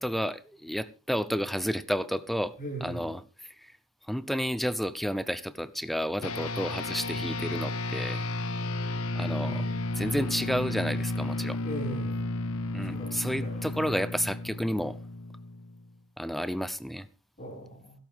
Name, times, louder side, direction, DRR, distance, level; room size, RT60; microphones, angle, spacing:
voice 1, 0.0-2.5 2.8-3.2 4.1-8.2 9.1-9.6 10.0-11.6 12.7-15.0 16.2-17.1, equal, ahead, 0.7 m, -31 dB
voice 2, 2.6-3.1 9.4-9.7 11.6-12.2 12.9-13.6 17.4-17.9, right 1 dB, 40° left, 6.2 m, -38 dB
sound 1, 6.2-15.9, left 2 dB, 90° left, 1.0 m, -33 dB
16.5 x 12.0 x 3.7 m
head